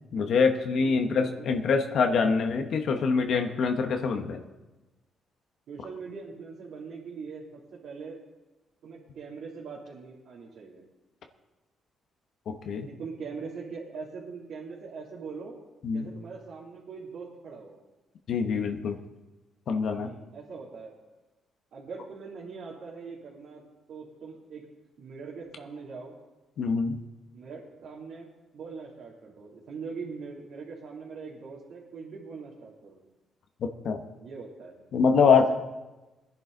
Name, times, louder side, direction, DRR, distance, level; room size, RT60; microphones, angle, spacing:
voice 1, 0.1-4.4 12.5-12.9 15.8-16.1 18.3-19.0 19.7-20.1 26.6-27.0 33.8-34.0 34.9-35.5, left 5 dB, 65° left, 5 dB, 1.2 m, -24 dB
voice 2, 0.7-1.5 5.7-8.2 8.8-10.8 12.9-15.6 15.9-17.8 19.9-20.9 21.7-23.6 23.9-24.7 25.0-26.1 27.3-33.0 34.2-34.8 35.2-35.5, right 5 dB, 70° right, -6 dB, 2.9 m, -42 dB
20.0 x 10.5 x 4.0 m, 1.1 s
cardioid pair, 90°, 0 cm